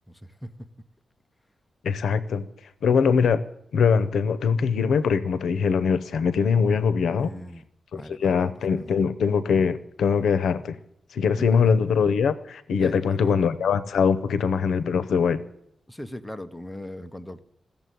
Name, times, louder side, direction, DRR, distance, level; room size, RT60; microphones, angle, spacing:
voice 1, 0.1-0.7 7.2-7.6 7.9-9.0 11.4-11.7 12.8-13.4 15.9-17.4, left 1 dB, 5° left, 0.6 m, -39 dB
voice 2, 1.8-2.5 2.8-3.4 3.7-7.3 7.9-10.8 11.1-15.4, left 6 dB, 85° left, 0.7 m, -22 dB
15.5 x 7.2 x 9.3 m
wide cardioid pair, 150°, 0 cm